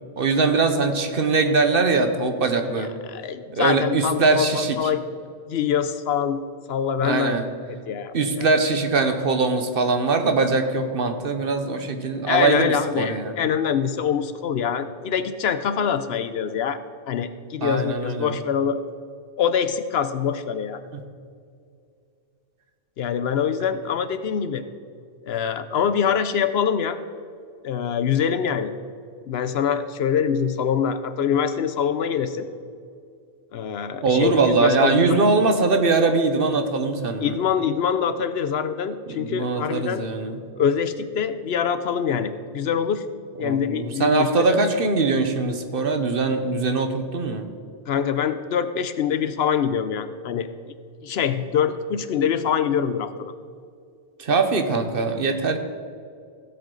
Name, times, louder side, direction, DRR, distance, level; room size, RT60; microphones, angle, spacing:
voice 1, 0.2-2.9 3.5-4.9 7.0-7.4 8.1-13.3 17.6-18.4 20.9-21.0 34.0-37.4 39.2-40.4 43.4-47.5 54.2-55.6, right 3 dB, 55° right, 7 dB, 1.1 m, -22 dB
voice 2, 2.8-5.0 5.5-6.4 6.7-7.4 7.9-8.5 12.3-16.8 17.1-18.8 19.4-20.8 23.0-24.6 25.2-27.0 27.6-28.7 29.3-32.5 33.5-35.2 37.2-40.0 40.6-43.0 43.4-44.5 47.9-50.5 51.0-53.3, left 7 dB, 70° left, 11 dB, 0.8 m, -24 dB
16.5 x 7.8 x 3.9 m, 2.3 s
omnidirectional pair, 1.2 m